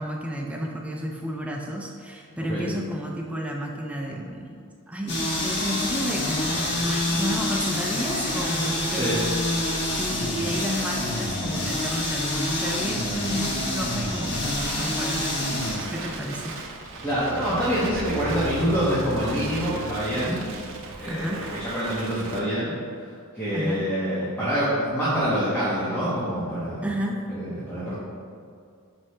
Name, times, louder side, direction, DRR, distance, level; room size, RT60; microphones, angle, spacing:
voice 1, 0.0-9.3 10.0-16.5 21.1-21.5 23.5-23.8 26.8-27.2, equal, 5° right, 0 dB, 0.5 m, -31 dB
sound 1, 5.1-15.8, left 1 dB, 50° left, 1.3 m, -27 dB
Crackle, 13.1-22.4, right 3 dB, 60° right, 0.9 m, -38 dB
sound 2, 16.9-21.5, right 2 dB, 80° right, 1.1 m, -38 dB
voice 2, 17.0-20.4 21.0-22.7 23.3-26.9 27.3-27.9, equal, 10° left, -11 dB, 1.3 m, -26 dB
7.6 x 5.1 x 3.2 m, 2.3 s
head